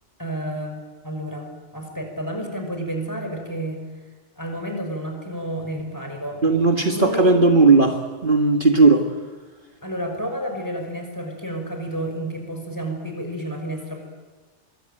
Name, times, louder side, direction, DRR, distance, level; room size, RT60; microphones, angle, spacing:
voice 1, 0.2-3.8 4.4-6.4 6.9-7.3 9.8-14.0, right 1 dB, 15° left, 4 dB, 5.7 m, -30 dB
voice 2, 6.4-9.1, right 3 dB, 45° right, 3 dB, 1.9 m, -16 dB
24.5 x 23.0 x 9.1 m, 1.4 s
omnidirectional pair, 1.2 m